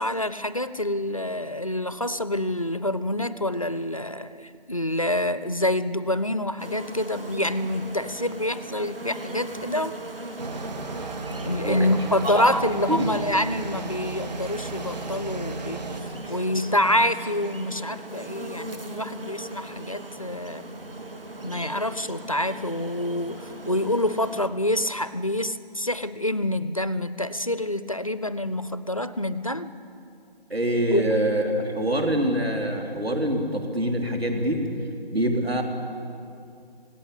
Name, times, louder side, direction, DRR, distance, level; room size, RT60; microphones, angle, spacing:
voice 1, 0.0-9.9 11.4-15.9 16.3-20.6 21.4-29.7 30.9-31.0, left 1 dB, 35° left, 14 dB, 0.4 m, -27 dB
sound 1, 6.6-24.5, right 1 dB, 70° right, 2.0 m, -39 dB
sound 2, 10.4-16.0, right 3 dB, 45° right, 1.7 m, -35 dB
voice 2, 30.5-34.6 35.1-35.6, right 1 dB, 85° right, 2 dB, 3.5 m, -25 dB
18.0 x 16.5 x 9.8 m, 2.5 s
figure-of-eight pair, 160°, 30 cm